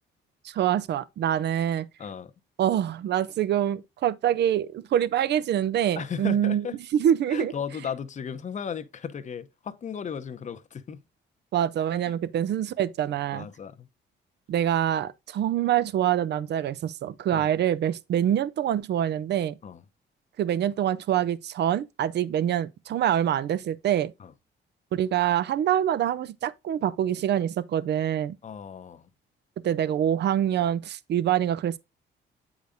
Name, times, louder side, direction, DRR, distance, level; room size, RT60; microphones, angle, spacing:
voice 1, 0.4-1.9 2.6-6.6 7.0-7.5 11.5-13.5 14.5-19.6 20.4-24.1 24.9-28.3 29.6-31.8, right 10 dB, 60° right, 0.5 m, -25 dB
voice 2, 2.0-2.3 6.0-6.8 7.3-11.0 12.0-12.1 13.3-13.9 17.3-17.5 19.6-19.8 24.2-24.3 28.4-29.1, left 7 dB, 40° left, 0.7 m, -35 dB
8.0 x 5.0 x 2.6 m
cardioid pair, 90°, 20 cm